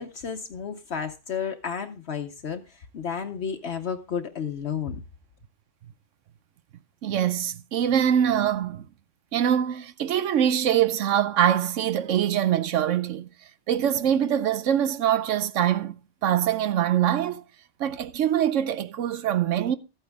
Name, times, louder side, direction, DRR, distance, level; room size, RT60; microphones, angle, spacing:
voice 1, 0.0-5.0, left 7 dB, 65° left, 1.1 m, -32 dB
voice 2, 7.0-8.9 9.3-13.3 13.7-17.4 17.8-19.8, right 10 dB, 90° right, 1.1 m, -24 dB
13.5 x 9.1 x 3.5 m
omnidirectional pair, 1.2 m